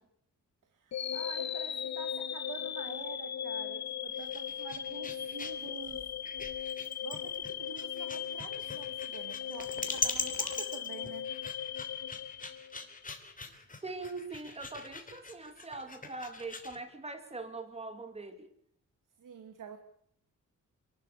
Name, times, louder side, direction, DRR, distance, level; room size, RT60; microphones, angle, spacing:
voice 1, 0.7-6.0 7.0-11.3 19.2-19.8, right 6 dB, 80° right, 7 dB, 2.4 m, -47 dB
sound 1, 0.9-13.0, left 9 dB, 60° left, 1.1 m, -38 dB
sound 2, 4.1-16.8, left 3 dB, 25° left, 3.0 m, -41 dB
voice 2, 13.8-18.5, right 3 dB, 20° right, 7 dB, 2.4 m, -42 dB
28.5 x 12.0 x 8.3 m, 0.69 s
wide cardioid pair, 135°, 31 cm